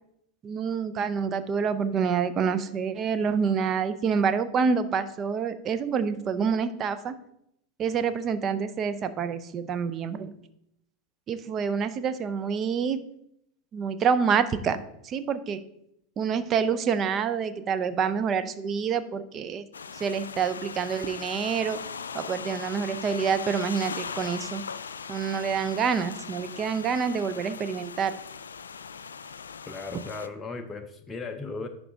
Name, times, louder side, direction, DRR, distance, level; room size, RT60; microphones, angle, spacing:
voice 1, 0.4-7.2 7.8-10.3 11.3-13.0 13.7-15.6 16.2-19.7 19.9-21.8 22.1-24.6 25.1-28.2, right 6 dB, 35° right, 12 dB, 0.6 m, -27 dB
sound 1, 19.7-30.3, left 6 dB, 80° left, 0.3 m, -39 dB
voice 2, 29.7-31.7, left 4 dB, 20° left, 5 dB, 0.6 m, -36 dB
11.0 x 3.9 x 3.5 m, 0.77 s
hypercardioid pair, 90°, 0 cm